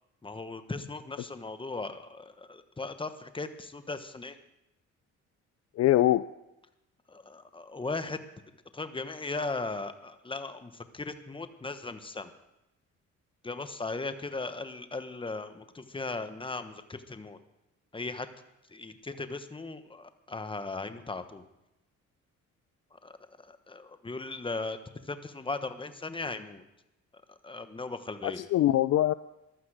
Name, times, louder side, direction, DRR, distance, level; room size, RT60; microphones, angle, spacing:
voice 1, 0.2-4.4 7.1-8.2 8.7-12.3 13.4-17.4 17.9-18.3 18.7-21.4 22.9-23.2 23.4-24.8 25.0-26.6 27.4-28.4, left 3 dB, 15° left, 9 dB, 1.2 m, -37 dB
voice 2, 5.8-6.2 28.2-29.1, left 13 dB, 60° left, 15 dB, 0.4 m, -23 dB
15.0 x 12.0 x 4.9 m, 0.91 s
cardioid pair, 90°, 30 cm